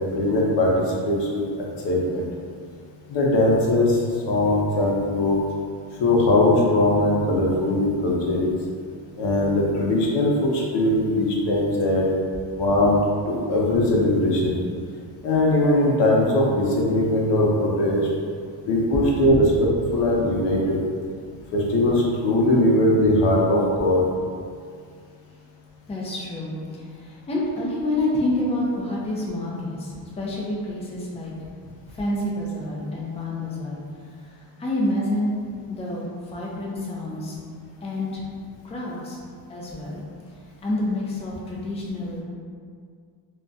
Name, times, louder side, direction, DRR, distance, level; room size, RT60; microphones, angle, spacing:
voice 1, 0.0-1.4 1.8-2.3 3.1-4.0 4.3-5.4 6.0-8.5 9.2-12.1 12.6-13.0 13.3-14.6 15.2-18.1 18.7-20.8 21.5-24.0, left 1 dB, 70° left, -3 dB, 0.8 m, -20 dB
voice 2, 25.9-31.3 31.8-33.8 34.6-35.4 35.7-37.4 37.8-38.3 38.6-39.2 39.5-40.0 40.6-42.2, left 1 dB, 15° left, -4 dB, 0.5 m, -28 dB
2.3 x 2.3 x 3.9 m, 2.1 s
cardioid pair, 100°, 44 cm